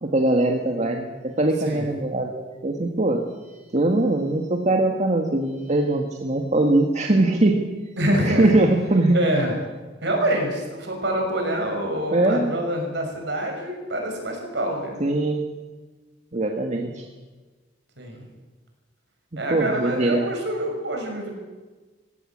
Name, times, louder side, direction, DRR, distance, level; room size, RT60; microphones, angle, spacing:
voice 1, 0.0-3.2 3.7-7.6 8.2-9.2 12.1-12.5 15.0-15.4 16.3-17.0 19.3-20.3, right 2 dB, 40° right, 2 dB, 1.7 m, -21 dB
voice 2, 8.0-8.5 9.1-9.5 10.0-15.0 18.0-18.2 19.4-21.3, right 1 dB, 70° right, 3 dB, 6.2 m, -26 dB
20.0 x 16.5 x 8.7 m, 1.3 s
head